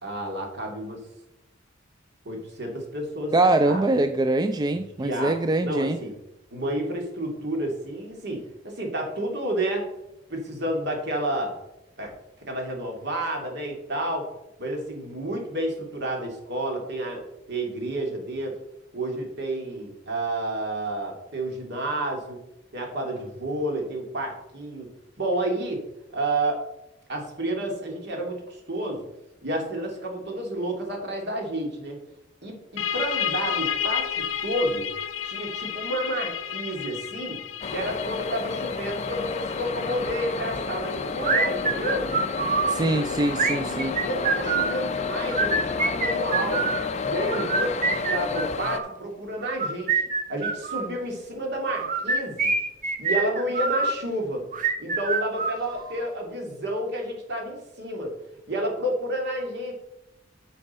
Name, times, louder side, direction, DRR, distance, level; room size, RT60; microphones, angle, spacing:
voice 1, 0.0-1.0 2.3-4.0 4.7-6.1 6.5-9.9 10.3-11.6 12.0-12.1 12.5-14.3 14.6-17.2 17.5-18.6 18.9-22.4 22.7-24.9 25.2-25.8 26.1-26.6 27.1-29.0 29.4-32.0 32.4-34.9 35.2-37.4 37.7-42.1 43.6-46.7 47.0-50.0 50.3-52.5 53.0-54.5 54.8-58.1 58.5-59.7, right 1 dB, 60° right, 2.2 m, -30 dB
voice 2, 3.3-6.0 42.7-44.0, right 2 dB, 20° right, 0.3 m, -23 dB
sound 1, 32.8-44.1, left 9 dB, 90° left, 0.8 m, -33 dB
sound 2, 37.6-48.8, left 4 dB, 35° left, 0.5 m, -30 dB
sound 3, 41.2-42.8 43.3-44.8 45.3-46.8 47.3-48.9 49.5-50.9 51.6-53.9 54.5-56.0, right 4 dB, 40° right, 0.9 m, -25 dB
9.9 x 5.7 x 4.1 m
head